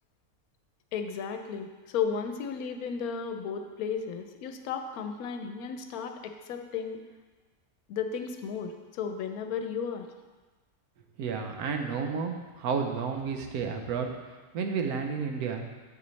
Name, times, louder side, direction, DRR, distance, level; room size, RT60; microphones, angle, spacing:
voice 1, 0.9-7.0 7.9-10.1, left 6 dB, 80° left, 6 dB, 1.1 m, -34 dB
voice 2, 11.2-14.1 14.5-15.7, right 5 dB, 80° right, 4 dB, 1.2 m, -31 dB
7.1 x 6.8 x 3.2 m, 1.3 s
omnidirectional pair, 1.5 m